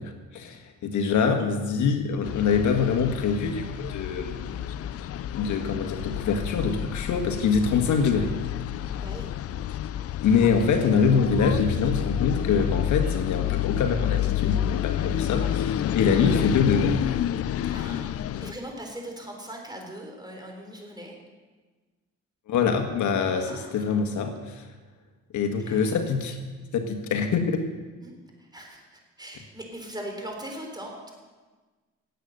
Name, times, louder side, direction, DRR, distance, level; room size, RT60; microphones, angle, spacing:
voice 1, 0.0-4.6 5.4-8.3 10.2-17.0 22.5-24.6 25.3-26.4 26.7-27.6, left 5 dB, 75° left, 5 dB, 1.6 m, -24 dB
sound 1, 2.2-18.5, left 11 dB, 50° left, 0.5 m, -29 dB
voice 2, 8.9-9.3 15.1-15.4 17.7-21.1 23.3-23.8 25.5-26.0 28.0-31.1, right 1 dB, 15° right, 1 dB, 4.0 m, -40 dB
17.5 x 8.3 x 6.6 m, 1.3 s
cardioid pair, 90°, 30 cm